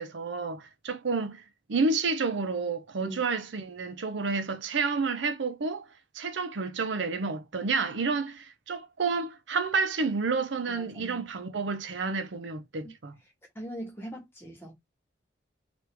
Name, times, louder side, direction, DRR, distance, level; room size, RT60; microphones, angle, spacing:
voice 1, 0.0-1.4 1.7-5.9 6.1-13.1, right 4 dB, 80° right, 0.6 m, -30 dB
voice 2, 10.7-11.5 12.8-12.9 13.5-14.7, equal, 15° left, 1.3 m, -41 dB
3.1 x 2.5 x 3.3 m
head